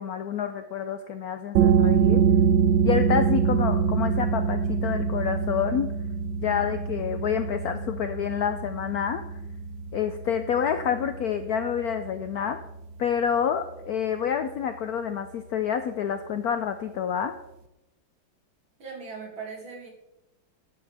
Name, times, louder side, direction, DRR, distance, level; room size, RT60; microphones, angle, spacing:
voice 1, 0.0-2.2 2.8-5.9 6.4-9.4 9.9-12.6 13.0-17.3, left 8 dB, 80° left, 9 dB, 0.8 m, -28 dB
sound 1, 1.6-12.9, right 7 dB, 70° right, 1.4 m, -25 dB
voice 2, 18.8-19.9, right 5 dB, 90° right, -1 dB, 3.4 m, -39 dB
12.5 x 9.2 x 3.4 m, 0.92 s
omnidirectional pair, 2.2 m